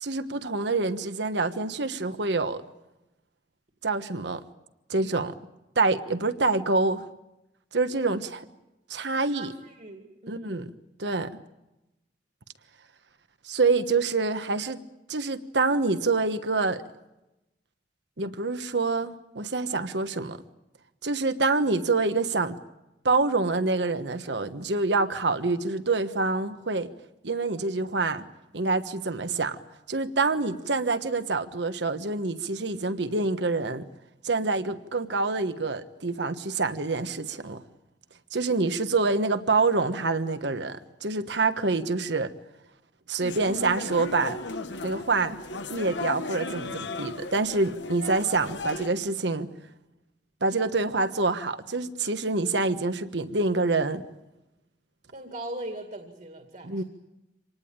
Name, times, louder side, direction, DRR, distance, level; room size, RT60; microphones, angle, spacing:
voice 1, 0.0-2.6 3.8-4.4 4.9-5.3 5.8-7.1 7.7-8.4 8.9-9.5 10.3-10.7 11.0-11.3 13.4-14.8 15.1-16.8 18.2-20.4 21.0-22.6 23.0-26.9 27.2-28.3 28.5-29.6 29.9-33.9 34.2-37.6 38.3-42.3 43.1-44.6 44.8-45.4 45.7-49.5 50.4-54.0 56.6-56.8, right 3 dB, 75° right, 10 dB, 1.3 m, -26 dB
voice 2, 9.2-10.6 38.7-38.8 55.1-56.8, right 1 dB, 50° right, 4 dB, 2.3 m, -40 dB
sound 1, 43.2-48.9, left 3 dB, 80° left, 1.4 m, -36 dB
26.5 x 19.0 x 8.9 m, 0.96 s
head